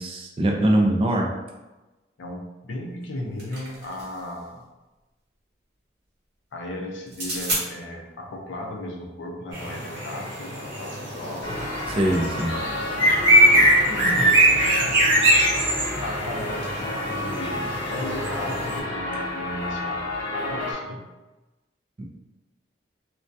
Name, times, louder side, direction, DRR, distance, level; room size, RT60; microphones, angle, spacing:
voice 1, 0.0-1.3 11.9-12.6, right 1 dB, 30° right, 1 dB, 0.3 m, -22 dB
voice 2, 2.2-4.7 6.5-11.7 12.9-15.1 16.0-20.0 20.3-21.0, left 1 dB, 75° left, 1 dB, 0.5 m, -35 dB
sound 1, 3.0-4.3 7.1-7.6, right 1 dB, 60° right, 0.8 m, -31 dB
sound 2, 9.5-18.8, right 1 dB, 85° right, 0.9 m, -22 dB
sound 3, 11.4-20.7, left 1 dB, 20° left, 0.7 m, -31 dB
2.2 x 2.2 x 2.6 m, 1.1 s
head